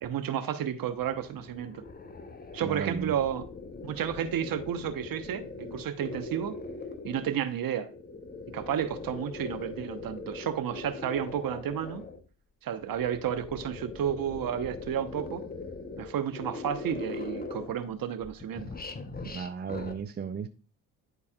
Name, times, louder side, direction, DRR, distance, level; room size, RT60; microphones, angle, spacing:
voice 1, 0.0-1.8 2.5-3.4 3.8-6.6 7.0-7.9 8.5-12.0 12.6-15.4 16.0-18.7, right 9 dB, 50° right, 1.0 m, -32 dB
sound 1, 0.9-7.4 7.9-12.2 12.8-17.9 18.2-19.9, left 3 dB, 20° left, 0.9 m, -41 dB
voice 2, 2.6-3.1 19.2-20.5, right 6 dB, 25° right, 0.5 m, -35 dB
11.0 x 4.1 x 2.3 m
hypercardioid pair, 55°, 45 cm